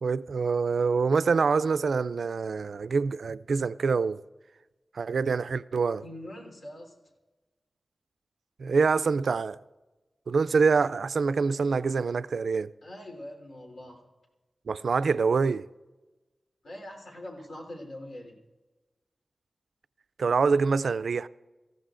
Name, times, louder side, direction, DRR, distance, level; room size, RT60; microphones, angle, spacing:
voice 1, 0.0-4.2 4.9-6.0 8.6-9.6 10.3-12.7 14.7-15.7 20.2-21.3, right 5 dB, 85° right, 0.3 m, -25 dB
voice 2, 6.0-6.9 12.8-14.1 16.6-18.3, left 1 dB, 85° left, 3.5 m, -43 dB
26.0 x 15.0 x 2.5 m
wide cardioid pair, 105°, 0 cm